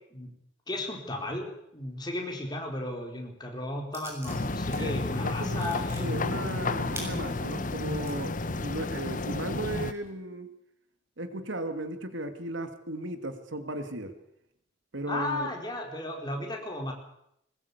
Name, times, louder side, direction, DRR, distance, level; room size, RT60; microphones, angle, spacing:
voice 1, 0.7-6.4 15.1-16.9, left 1 dB, 20° left, 1 dB, 4.3 m, -35 dB
sound 1, 3.9-4.8 5.1-8.1 8.7-8.8 9.2-10.1, right 1 dB, 15° right, 7.2 m, -45 dB
sound 2, 4.3-9.9, left 2 dB, 45° left, 1.0 m, -31 dB
voice 2, 5.2-10.5 11.2-14.1 14.9-15.5, right 1 dB, 85° right, 8 dB, 2.5 m, -36 dB
21.5 x 20.5 x 8.4 m, 0.78 s
head